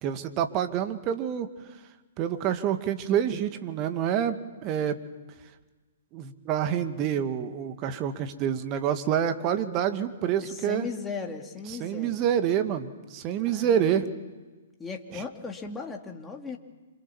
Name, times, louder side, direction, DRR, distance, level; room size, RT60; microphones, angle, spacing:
voice 1, 0.0-1.5 2.2-5.0 6.1-10.9 11.8-14.1 15.1-15.2, right 9 dB, 30° right, 8 dB, 2.1 m, -27 dB
voice 2, 10.4-12.3 13.4-14.1 14.8-16.6, left 4 dB, 10° left, 2 dB, 2.6 m, -37 dB
27.5 x 27.0 x 7.3 m, 1.3 s
figure-of-eight pair, 120°, 0 cm